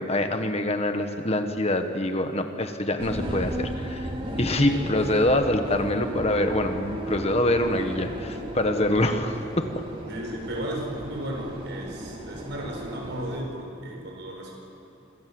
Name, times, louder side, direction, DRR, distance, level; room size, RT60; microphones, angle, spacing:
voice 1, 0.0-4.1 4.4-9.7, left 1 dB, 30° left, 6 dB, 1.5 m, -25 dB
sound 1, 3.0-13.4, equal, 30° right, 4.0 m, -35 dB
voice 2, 8.9-9.2 10.1-14.5, right 1 dB, 60° right, 1 dB, 7.3 m, -35 dB
26.5 x 26.0 x 8.0 m, 2.6 s
head